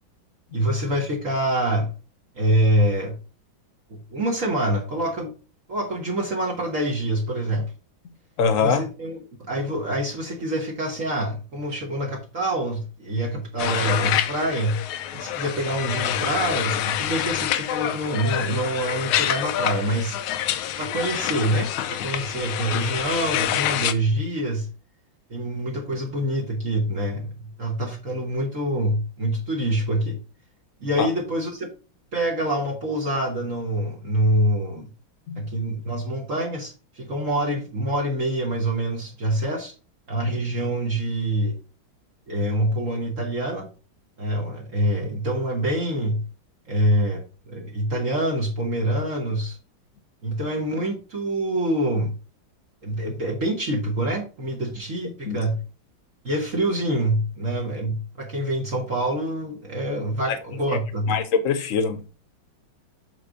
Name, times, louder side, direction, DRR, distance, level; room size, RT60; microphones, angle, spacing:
voice 1, 0.5-1.9 2.4-3.2 3.9-5.3 5.7-7.7 8.6-9.2 9.5-14.8 15.1-20.2 20.8-24.7 25.3-27.3 27.6-30.2 30.8-31.7 32.1-34.9 35.4-39.7 40.1-41.5 42.3-43.7 44.2-46.2 46.7-49.6 50.2-52.1 52.8-55.6 56.2-61.2, right 1 dB, 45° right, 1.5 m, -25 dB
voice 2, 8.4-8.8 31.0-31.1 35.3-35.4 55.3-55.4 60.2-60.4 61.1-62.1, left 6 dB, 50° left, 1.1 m, -23 dB
sound 1, 13.6-23.9, left 11 dB, 85° left, 1.5 m, -27 dB
8.0 x 3.8 x 4.9 m
omnidirectional pair, 2.2 m